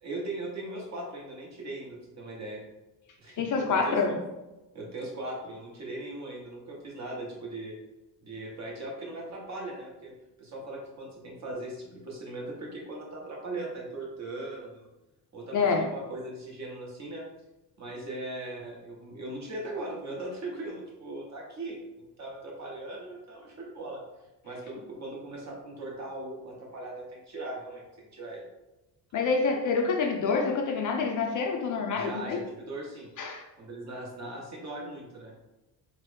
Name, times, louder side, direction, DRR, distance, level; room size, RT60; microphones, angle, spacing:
voice 1, 0.0-2.6 3.2-4.2 4.7-7.8 8.2-10.1 10.4-14.9 15.3-17.2 17.8-24.0 24.4-28.4 31.9-33.1 33.6-35.3, right 2 dB, 40° right, -2 dB, 0.9 m, -39 dB
voice 2, 3.4-4.2 15.5-15.9 29.1-32.4 33.2-33.4, left 4 dB, 45° left, 2 dB, 0.4 m, -27 dB
3.1 x 2.0 x 3.2 m, 1.0 s
cardioid pair, 110°, 43 cm